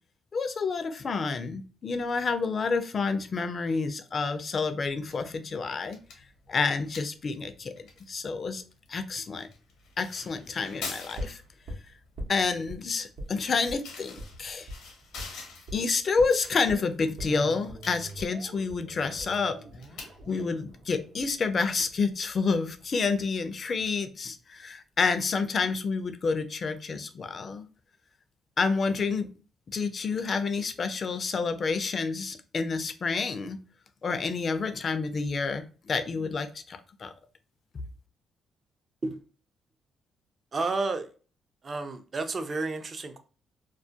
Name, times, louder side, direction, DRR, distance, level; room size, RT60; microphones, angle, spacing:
voice 1, 0.3-6.0 6.5-8.6 8.9-9.5 10.0-11.4 12.3-14.7 15.7-19.6 20.3-27.7 28.6-29.3 29.7-33.6 34.0-37.1, left 4 dB, 45° left, 0.3 m, -29 dB
sound 1, 4.9-23.2, left 4 dB, 85° left, 0.8 m, -48 dB
sound 2, 11.1-12.8 13.2-13.4 13.7-13.8 14.2-14.3 14.7-14.8 15.2-15.4 15.7-15.8 16.2-22.2 22.5-22.6, equal, 70° right, 0.7 m, -42 dB
voice 2, 40.5-41.1 41.6-43.2, right 3 dB, 35° right, 0.4 m, -31 dB
2.3 x 2.1 x 2.6 m
cardioid pair, 90°, 0 cm